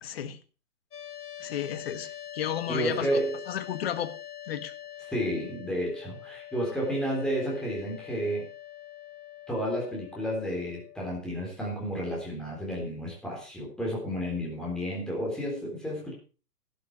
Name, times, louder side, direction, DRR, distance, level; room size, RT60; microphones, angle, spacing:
voice 1, 0.0-0.4 1.4-3.2 3.5-4.1 4.5-4.7, left 10 dB, 40° left, 11 dB, 1.5 m, -33 dB
sound 1, 0.9-11.0, left 11 dB, 80° left, 2.7 m, -44 dB
voice 2, 2.7-3.4 5.1-8.5 9.5-16.1, equal, ahead, -3 dB, 3.8 m, -31 dB
12.0 x 12.0 x 4.9 m, 0.35 s
hypercardioid pair, 165°, 46 cm